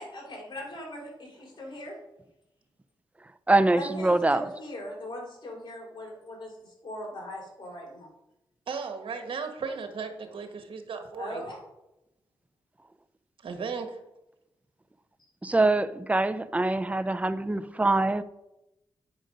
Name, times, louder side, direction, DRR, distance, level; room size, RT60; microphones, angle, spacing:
voice 1, 0.0-1.9 3.7-8.1 11.2-11.6, equal, 55° left, -1 dB, 3.4 m, -39 dB
voice 2, 3.5-4.4 15.4-18.2, right 2 dB, 15° right, 12 dB, 0.5 m, -24 dB
voice 3, 8.7-11.4 13.4-14.0, right 5 dB, 70° right, 6 dB, 1.3 m, -36 dB
9.1 x 5.2 x 5.2 m, 0.90 s
cardioid pair, 60°, 9 cm